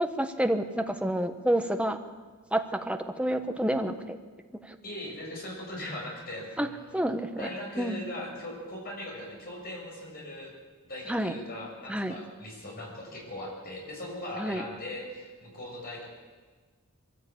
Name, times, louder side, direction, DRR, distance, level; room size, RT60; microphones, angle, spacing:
voice 1, 0.0-2.0 2.5-4.2 4.7-4.8 6.6-6.7 6.9-7.5 7.8-8.1 11.1-11.3 11.9-12.2 14.4-14.6, right 1 dB, 5° right, 6 dB, 1.0 m, -29 dB
voice 2, 4.8-7.0 7.4-10.5 10.8-16.1, left 1 dB, 45° left, -2 dB, 7.1 m, -39 dB
22.0 x 14.0 x 8.5 m, 1.4 s
head